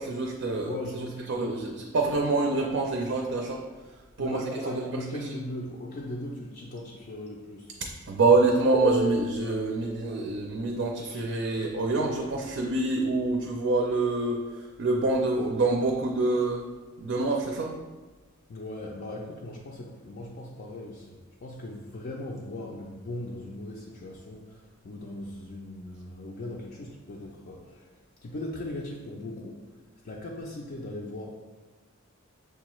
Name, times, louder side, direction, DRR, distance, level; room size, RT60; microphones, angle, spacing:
voice 1, 0.0-0.7 1.3-3.6 4.2-4.9 8.1-16.6 17.0-17.7, right 3 dB, 60° right, 1 dB, 0.4 m, -26 dB
voice 2, 0.6-1.8 4.2-7.8 18.5-29.7 30.0-31.3, left 1 dB, 45° left, -2 dB, 0.4 m, -39 dB
6.3 x 2.3 x 3.0 m, 1.3 s
head